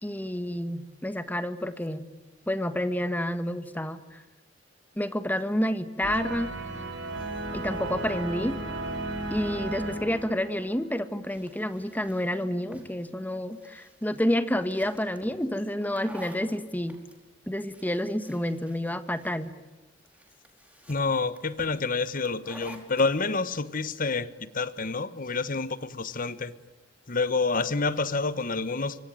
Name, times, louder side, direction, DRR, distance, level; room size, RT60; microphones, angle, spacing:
voice 1, 0.0-2.1 2.5-4.2 5.0-6.5 7.5-8.6 9.3-17.0 17.5-19.5, left 1 dB, 10° left, 11 dB, 1.5 m, -29 dB
sound 1, 6.0-10.9, right 2 dB, 75° right, 4.7 m, -34 dB
sound 2, 10.7-23.1, right 1 dB, 10° right, 4.7 m, -51 dB
voice 2, 20.9-26.5 27.1-29.0, left 4 dB, 50° left, 15 dB, 1.2 m, -28 dB
25.5 x 25.0 x 9.2 m, 1.1 s
head